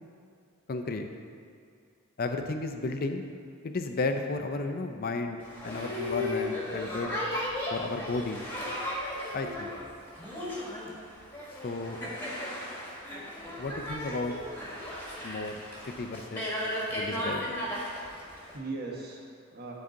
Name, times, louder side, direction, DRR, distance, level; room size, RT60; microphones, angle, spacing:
voice 1, 0.7-1.1 2.2-3.2 3.6-7.2 7.7-8.4 9.3-9.7 11.6-12.0 13.6-14.4 15.2-15.6 15.9-16.5 16.9-17.4, left 3 dB, 40° left, 6 dB, 0.5 m, -33 dB
Boat Water vehicle, 5.4-18.6, left 1 dB, 10° left, 1.5 m, -35 dB
voice 2, 18.0-19.7, right 3 dB, 45° right, -2 dB, 1.2 m, -41 dB
12.0 x 4.2 x 3.8 m, 2.4 s
head